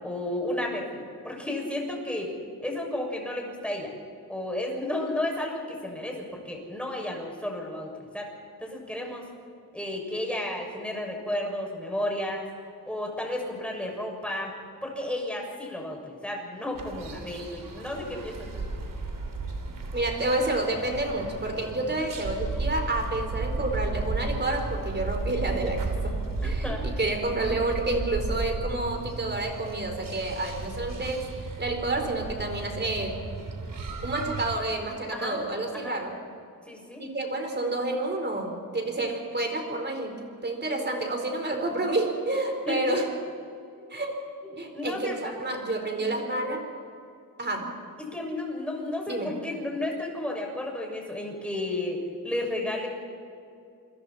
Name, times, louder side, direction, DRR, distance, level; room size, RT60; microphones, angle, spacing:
voice 1, 0.0-2.3 2.6-3.9 4.3-8.3 8.6-9.3 9.7-12.5 12.9-14.5 14.8-18.6 26.4-26.8 35.1-35.4 35.7-36.0 36.7-37.0 42.7-43.1 44.4-45.3 46.0-46.2 48.0-52.9, left 1 dB, 5° left, 0 dB, 6.6 m, -32 dB
sound 1, 16.7-34.6, right 3 dB, 65° right, 3.4 m, -34 dB
voice 2, 19.9-31.2 31.6-33.2 34.0-36.2 37.0-43.1 43.9-44.1 44.6-46.6 47.4-47.7 49.1-49.4, right 2 dB, 30° right, 3 dB, 4.5 m, -29 dB
29.0 x 22.0 x 4.4 m, 2.5 s
cardioid pair, 100°, 36 cm